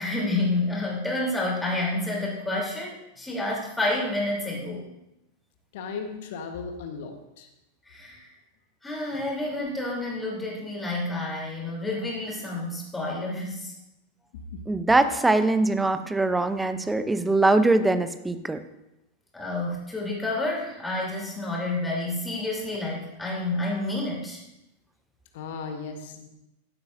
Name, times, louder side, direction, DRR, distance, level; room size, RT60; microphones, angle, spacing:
voice 1, 0.0-4.8 7.8-8.3 8.8-13.7 19.3-24.4, left 2 dB, 10° left, -4 dB, 3.3 m, -29 dB
voice 2, 5.7-7.5 14.5-14.6 25.3-26.3, left 5 dB, 55° left, 5 dB, 1.3 m, -36 dB
voice 3, 14.7-18.6, right 2 dB, 10° right, 11 dB, 0.6 m, -22 dB
14.5 x 8.0 x 2.6 m, 0.91 s
figure-of-eight pair, 90°, 0 cm